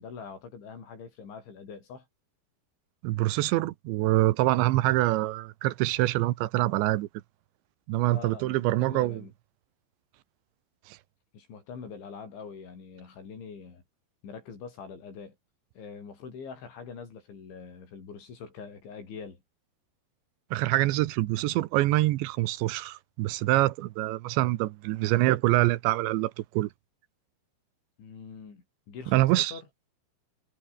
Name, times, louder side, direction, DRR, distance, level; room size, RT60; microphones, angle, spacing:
voice 1, 0.0-2.1 8.1-9.3 11.3-13.8 14.2-15.4 15.8-19.4 28.0-29.7, left 5 dB, 90° left, 8.6 m, -44 dB
voice 2, 3.0-7.1 7.9-9.2 10.9-11.0 20.5-26.7 29.1-29.5, right 17 dB, 85° right, 3.2 m, -25 dB
omnidirectional pair, 5.2 m